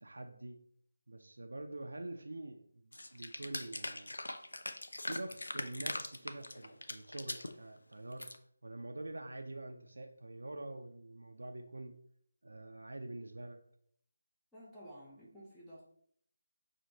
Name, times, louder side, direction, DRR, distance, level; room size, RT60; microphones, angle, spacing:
voice 1, 0.0-0.6 1.1-4.2 5.1-8.3 8.6-11.9 12.4-13.6, right 2 dB, 65° right, 5 dB, 0.4 m, -46 dB
sound 1, 2.9-7.5 7.9-8.4, left 2 dB, 70° left, 0.4 m, -41 dB
voice 2, 14.5-15.8, equal, 5° left, -8 dB, 0.6 m, -53 dB
5.8 x 2.5 x 2.8 m, 0.65 s
figure-of-eight pair, 155°, 0 cm